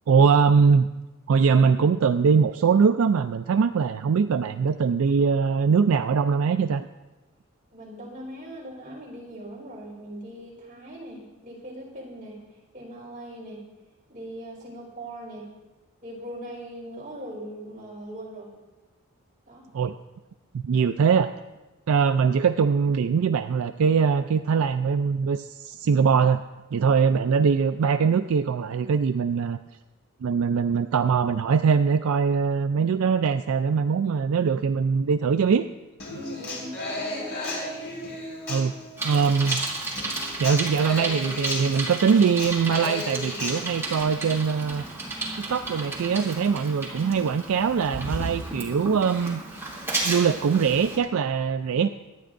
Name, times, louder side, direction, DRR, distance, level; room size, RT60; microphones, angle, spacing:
voice 1, 0.1-0.9 1.3-6.9 19.7-19.9 20.6-21.3 21.9-26.4 26.7-29.6 30.2-35.7 38.5-38.7 39.0-39.7 40.4-44.9 45.4-49.4 50.0-51.9, right 6 dB, 70° right, 9 dB, 0.4 m, -22 dB
voice 2, 7.7-12.4 12.7-13.6 14.1-15.5 16.0-18.5 19.5-19.7 36.1-37.4, right 1 dB, 35° right, -4 dB, 4.2 m, -40 dB
Human voice / Acoustic guitar, 36.0-44.0, left 2 dB, 55° left, 4.4 m, -35 dB
Bicycle, 39.0-51.0, right 2 dB, 10° right, 2.7 m, -33 dB
24.5 x 10.0 x 2.6 m, 1.1 s
head